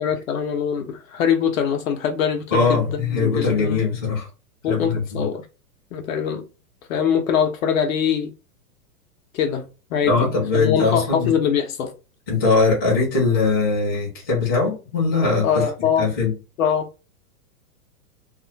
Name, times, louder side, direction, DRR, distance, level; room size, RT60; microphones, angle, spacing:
voice 1, 0.0-3.8 4.6-5.4 5.9-6.4 6.9-8.3 9.3-11.9 15.4-16.1 16.6-16.9, left 7 dB, 60° left, 0.6 m, -23 dB
voice 2, 2.5-4.3 4.7-5.3 10.1-11.3 12.3-15.7 16.0-16.3, left 4 dB, 15° left, 0.3 m, -21 dB
2.4 x 2.1 x 2.7 m
supercardioid pair, 160°, 47 cm